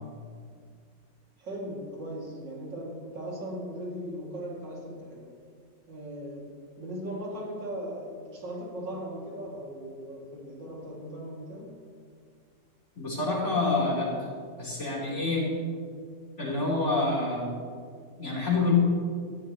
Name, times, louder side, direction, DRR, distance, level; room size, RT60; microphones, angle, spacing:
voice 1, 1.4-5.3 5.9-11.8, equal, 75° right, -3 dB, 3.2 m, -38 dB
voice 2, 13.0-14.3 14.6-15.5 16.4-17.6 18.2-18.7, left 2 dB, 40° left, -5 dB, 4.1 m, -27 dB
17.5 x 14.0 x 3.1 m, 2.1 s
omnidirectional pair, 1.9 m